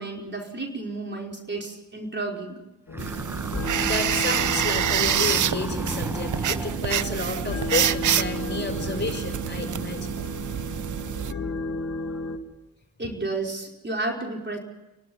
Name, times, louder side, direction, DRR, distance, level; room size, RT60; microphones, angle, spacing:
voice 1, 0.0-2.6 13.0-14.6, right 2 dB, 30° right, 1 dB, 5.0 m, -32 dB
sound 1, 2.9-12.4, left 3 dB, 45° left, 2.6 m, -34 dB
sound 2, 2.9-7.3, right 1 dB, 5° right, 1.2 m, -36 dB
sound 3, 3.0-11.3, right 10 dB, 55° right, 0.7 m, -27 dB
voice 2, 3.8-10.1, left 3 dB, 30° left, 6 dB, 6.0 m, -31 dB
29.5 x 12.0 x 9.8 m, 1.0 s
supercardioid pair, 55°, 37 cm